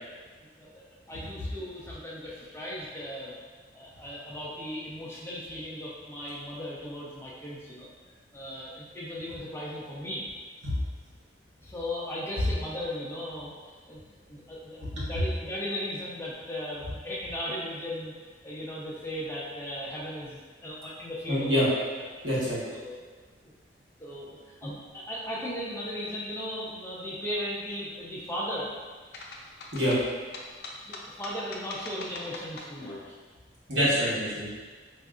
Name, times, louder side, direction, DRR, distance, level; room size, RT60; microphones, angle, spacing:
voice 1, 1.1-3.3 3.7-7.9 8.3-10.2 11.6-13.5 13.9-14.0 14.3-18.1 18.4-21.5 22.7-22.9 23.4-23.5 24.0-28.7 30.8-33.1, equal, 15° left, -6 dB, 0.6 m, -37 dB
voice 2, 21.3-21.7 22.2-22.6 29.7-30.0 33.7-34.5, equal, 90° right, -8 dB, 1.2 m, -26 dB
sound 1, 29.1-33.0, left 3 dB, 60° left, 0.5 m, -42 dB
4.5 x 2.6 x 2.4 m, 1.5 s
head